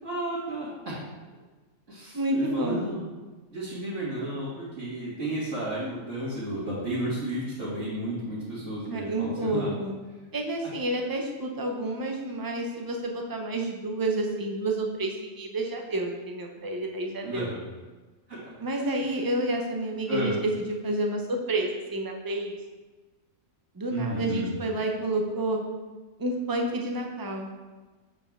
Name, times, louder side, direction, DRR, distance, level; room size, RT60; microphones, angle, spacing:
voice 1, 0.0-0.7 1.9-3.1 3.5-9.7 17.2-17.6 18.3-18.4 20.1-20.3 23.9-24.5, right 1 dB, 65° right, -11 dB, 2.4 m, -32 dB
voice 2, 2.1-2.8 8.9-10.0 10.3-17.5 18.6-22.6 23.7-25.6 26.2-27.5, right 1 dB, 20° right, 2 dB, 0.6 m, -29 dB
7.7 x 4.9 x 3.6 m, 1.3 s
omnidirectional pair, 1.4 m